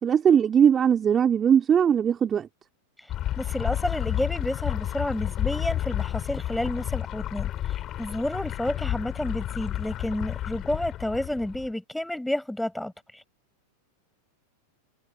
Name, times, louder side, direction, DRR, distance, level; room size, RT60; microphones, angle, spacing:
voice 1, 0.0-2.5, right 8 dB, 25° right, 3.6 m, -20 dB
sound 1, 3.1-11.7, left 12 dB, 30° left, 4.5 m, -31 dB
voice 2, 3.4-13.2, left 1 dB, 5° left, 6.6 m, -30 dB
figure-of-eight pair, 90°, 0 cm